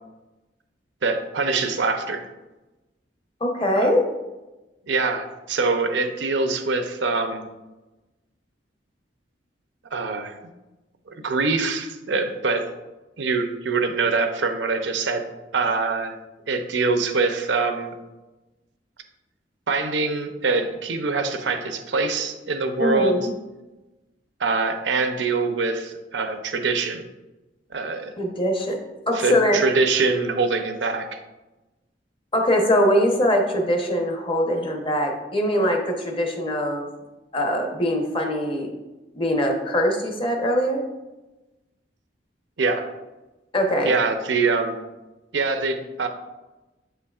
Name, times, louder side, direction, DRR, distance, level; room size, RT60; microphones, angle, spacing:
voice 1, 1.0-2.2 3.8-3.9 4.9-7.5 9.9-10.3 11.1-12.7 13.2-15.2 15.5-16.1 16.5-17.9 19.7-23.2 24.4-27.0 27.7-28.1 29.1-31.2 42.6-42.9 43.8-44.8 45.3-46.1, right 4 dB, 85° right, 7 dB, 0.7 m, -24 dB
voice 2, 3.4-4.0 22.8-23.3 28.2-28.8 29.1-29.6 32.3-36.9 37.3-38.7 39.1-40.8 43.5-44.0, equal, 30° left, 2 dB, 0.9 m, -22 dB
7.8 x 5.7 x 2.4 m, 1.1 s
head